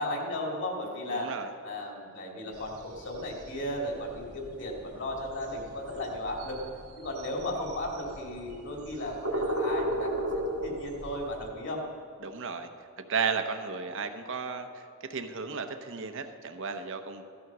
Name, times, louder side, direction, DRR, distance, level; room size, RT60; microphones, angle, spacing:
voice 1, 0.0-1.3 1.6-6.6 7.0-10.1 10.6-11.8, left 1 dB, 55° left, 0 dB, 2.8 m, -35 dB
voice 2, 1.1-1.5 12.2-12.7 13.1-14.8 15.1-17.2, right 5 dB, 60° right, 7 dB, 0.9 m, -34 dB
sound 1, 2.5-11.5, right 1 dB, 80° right, 1.8 m, -36 dB
15.5 x 12.0 x 6.1 m, 2.6 s
head